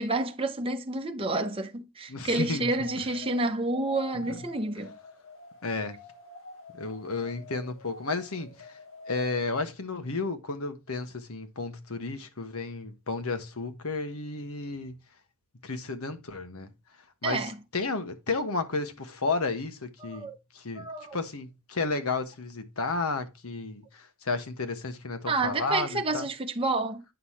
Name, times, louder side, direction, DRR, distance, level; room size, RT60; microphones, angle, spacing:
voice 1, 0.0-4.9 17.2-17.6 20.0-20.4 20.8-21.2 25.3-27.0, right 2 dB, 25° right, 0.9 m, -29 dB
voice 2, 2.1-2.7 4.1-4.4 5.6-6.0 6.8-8.8 9.1-15.0 15.6-16.7 17.2-20.3 20.5-20.8 21.1-26.3, left 3 dB, 85° left, 1.3 m, -32 dB
sound 1, 2.8-9.4, left 4 dB, 65° left, 2.4 m, -47 dB
9.3 x 5.8 x 3.1 m
head